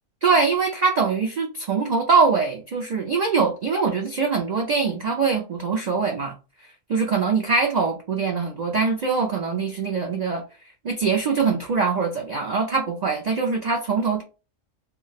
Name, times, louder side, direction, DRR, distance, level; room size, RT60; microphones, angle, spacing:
voice 1, 0.2-6.3 6.9-10.4 10.8-14.2, right 5 dB, 90° right, 0.3 m, -23 dB
2.3 x 2.1 x 3.9 m
omnidirectional pair, 1.3 m